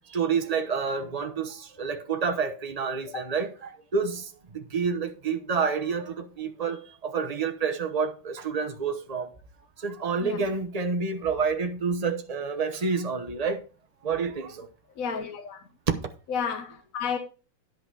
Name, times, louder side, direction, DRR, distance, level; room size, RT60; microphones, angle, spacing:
voice 1, 0.1-4.3 4.5-9.3 9.8-13.6 14.0-14.7 15.9-16.0, right 5 dB, 60° right, 0.4 m, -28 dB
voice 2, 15.0-15.6 16.3-17.2, left 6 dB, 50° left, 1.1 m, -32 dB
10.5 x 5.9 x 4.8 m
omnidirectional pair, 2.4 m